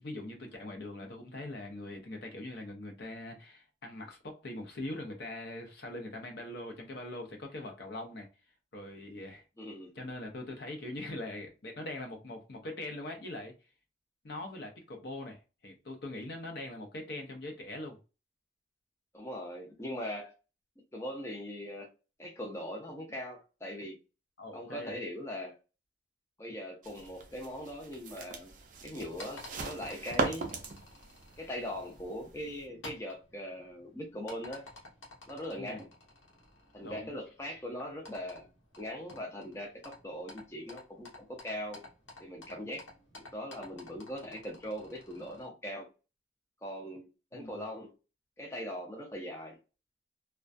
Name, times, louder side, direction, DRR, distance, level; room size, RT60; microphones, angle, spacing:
voice 1, 0.0-8.3 8.7-9.4 9.9-13.5 14.2-18.0 24.4-25.0 35.6-35.8 36.8-37.1 47.3-47.5, left 1 dB, 55° left, 0.6 m, -42 dB
voice 2, 9.6-9.9 19.1-20.3 20.9-21.9 22.2-24.0 24.5-25.5 26.4-28.5 28.8-30.5 31.4-34.7 35.3-35.9 36.7-38.5 38.8-41.8 42.2-42.8 43.1-45.9 46.6-47.9 48.4-49.6, equal, 15° left, 0.5 m, -40 dB
sound 1, 26.8-32.7, right 3 dB, 45° right, 0.4 m, -39 dB
sound 2, 29.0-45.5, left 2 dB, 85° left, 0.9 m, -53 dB
2.2 x 2.2 x 2.5 m
head